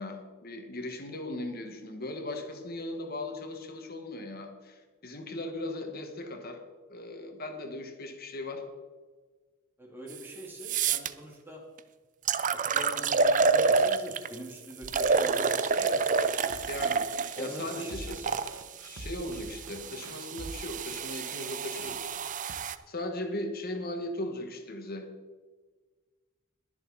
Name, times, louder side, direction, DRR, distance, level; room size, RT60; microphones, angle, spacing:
voice 1, 0.0-6.6 6.9-8.6 16.7-17.0 17.4-18.2 18.8-22.0 22.9-25.1, left 1 dB, 45° left, 4 dB, 1.9 m, -38 dB
voice 2, 9.8-11.6 12.5-16.1 17.4-18.3, equal, 10° right, -1 dB, 2.5 m, -43 dB
sound 1, 10.1-10.2 10.6-11.1 11.8-11.9 12.3-14.4 14.9-18.5 19.3-22.8, right 4 dB, 35° right, 0.5 m, -28 dB
sound 2, 14.8-22.5, right 2 dB, 90° right, 1.2 m, -47 dB
21.5 x 7.2 x 4.4 m, 1.4 s
head